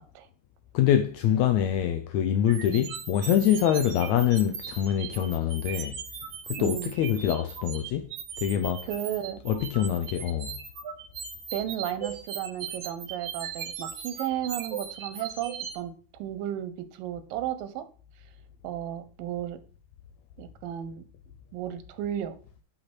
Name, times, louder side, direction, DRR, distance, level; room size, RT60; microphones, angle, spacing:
voice 1, 0.7-6.0 6.5-8.1 8.4-8.9 9.4-10.6, left 10 dB, 85° left, 1.6 m, -25 dB
sound 1, 2.5-15.7, right 7 dB, 65° right, 2.6 m, -38 dB
voice 2, 6.6-6.9 8.9-9.4 11.5-17.9 18.6-19.6 20.4-21.1 21.5-22.4, right 11 dB, 85° right, 2.4 m, -34 dB
6.4 x 5.8 x 4.3 m
omnidirectional pair, 3.9 m